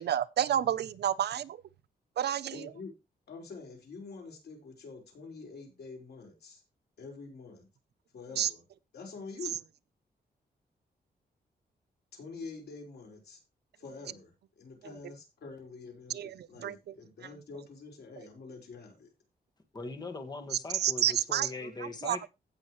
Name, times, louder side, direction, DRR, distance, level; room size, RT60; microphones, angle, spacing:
voice 1, 0.0-1.6 2.2-2.6 8.4-8.5 16.1-16.8 20.7-21.5 22.0-22.3, right 10 dB, 85° right, 0.7 m, -29 dB
voice 2, 2.5-2.9 3.3-6.6 7.0-7.7 8.1-8.6 8.9-9.6 12.1-13.4 13.8-16.2 16.5-19.1, left 4 dB, 80° left, 5.0 m, -46 dB
voice 3, 19.7-22.3, left 3 dB, 25° left, 1.7 m, -40 dB
16.5 x 6.5 x 3.1 m
wide cardioid pair, 140°, 17 cm